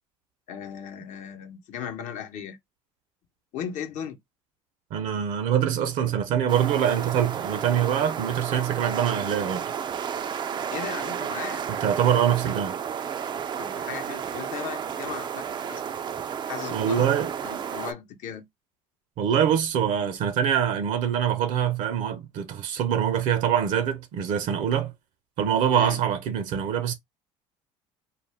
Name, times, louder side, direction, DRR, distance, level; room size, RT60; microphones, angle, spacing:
voice 1, 0.5-2.6 3.5-4.2 10.7-11.6 13.6-15.9 16.5-17.1 17.4-18.5 25.7-26.0, left 8 dB, 65° left, 0.8 m, -36 dB
voice 2, 4.9-9.7 11.7-12.8 16.7-17.3 19.2-24.9 25.4-26.9, right 9 dB, 65° right, 0.7 m, -24 dB
sound 1, 6.5-17.9, right 8 dB, 35° right, 0.3 m, -32 dB
2.4 x 2.2 x 3.3 m
supercardioid pair, 85°, 14 cm